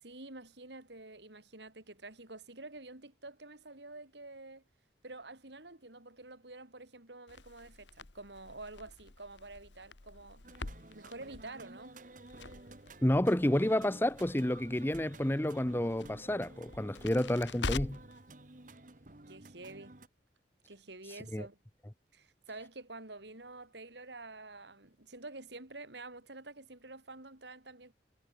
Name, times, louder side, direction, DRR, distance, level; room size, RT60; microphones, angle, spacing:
voice 1, 0.0-4.6 5.0-10.5 10.9-12.0 19.3-20.0 20.7-21.6 22.1-27.9, right 2 dB, 70° right, 3.9 m, -48 dB
Crackle, 7.3-18.2, left 3 dB, 80° left, 1.5 m, -45 dB
sound 1, 10.4-20.1, right 2 dB, 45° right, 1.5 m, -53 dB
voice 2, 13.0-18.0 21.3-21.5, left 1 dB, 10° left, 0.7 m, -30 dB
head